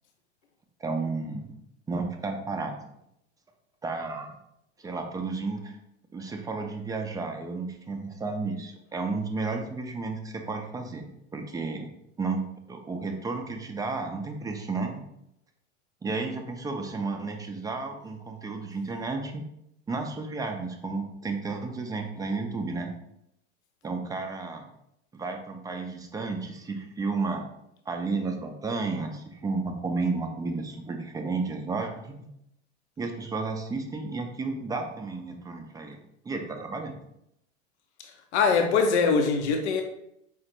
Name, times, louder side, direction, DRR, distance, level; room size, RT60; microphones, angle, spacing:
voice 1, 0.8-1.5 1.9-2.8 3.8-4.4 4.8-5.7 6.1-11.9 12.2-12.4 12.7-14.9 16.0-19.4 19.9-22.9 23.8-24.7 25.1-27.4 27.9-32.2 33.0-36.0 36.2-37.0, right 3 dB, 10° right, 4 dB, 0.4 m, -32 dB
voice 2, 38.3-39.8, left 5 dB, 70° left, 4 dB, 0.6 m, -22 dB
4.8 x 2.0 x 2.9 m, 0.78 s
figure-of-eight pair, 80°, 35 cm